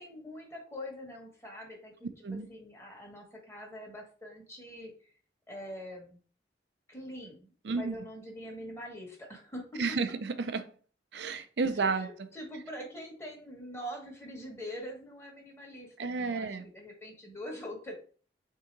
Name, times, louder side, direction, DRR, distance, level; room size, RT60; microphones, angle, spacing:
voice 1, 0.0-2.1 2.5-4.9 5.5-6.2 6.9-9.8 11.7-17.9, equal, 15° left, 1.2 m, -44 dB
voice 2, 7.6-7.9 9.8-10.7 11.1-12.1 16.0-16.7, right 4 dB, 75° right, 0.5 m, -31 dB
3.7 x 2.7 x 4.5 m
head